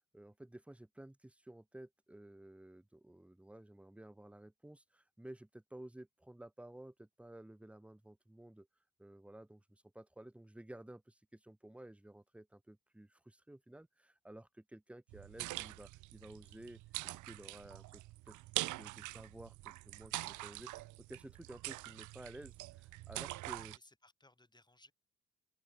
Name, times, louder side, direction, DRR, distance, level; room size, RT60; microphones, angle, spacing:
voice 1, 0.1-8.7 9.0-23.8, right 1 dB, 5° right, 0.8 m, -54 dB
sound 1, 15.1-23.8, right 19 dB, 80° right, 0.5 m, -44 dB
voice 2, 23.4-24.9, left 2 dB, 15° left, 5.9 m, -65 dB
cardioid pair, 90°, 30 cm